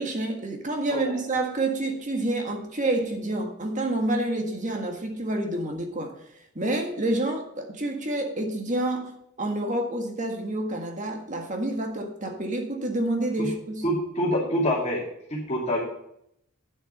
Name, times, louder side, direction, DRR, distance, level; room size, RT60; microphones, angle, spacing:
voice 1, 0.0-6.1 6.6-13.8, right 1 dB, 35° right, 3 dB, 1.7 m, -28 dB
voice 2, 13.8-15.0 15.3-15.8, equal, 30° left, -4 dB, 2.5 m, -26 dB
9.9 x 7.9 x 5.5 m, 0.74 s
head